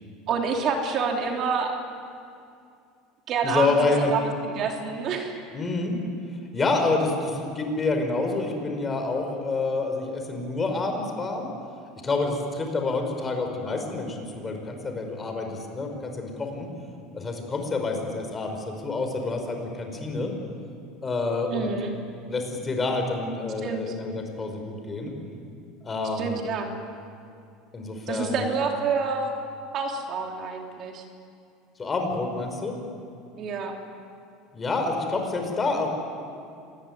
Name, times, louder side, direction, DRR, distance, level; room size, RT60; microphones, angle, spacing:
voice 1, 0.3-1.8 3.3-5.4 21.5-21.9 23.6-23.9 26.2-26.7 28.1-29.3 29.7-31.0 33.4-33.8, right 5 dB, 45° right, 2 dB, 3.2 m, -28 dB
voice 2, 3.4-4.1 5.5-6.0 6.5-11.5 12.0-16.7 17.1-20.3 21.0-21.7 22.3-25.1 25.8-26.4 27.7-28.4 31.8-32.8 34.5-35.9, left 3 dB, 20° left, 4 dB, 4.9 m, -28 dB
26.5 x 19.5 x 9.4 m, 2.4 s
supercardioid pair, 130°, 0 cm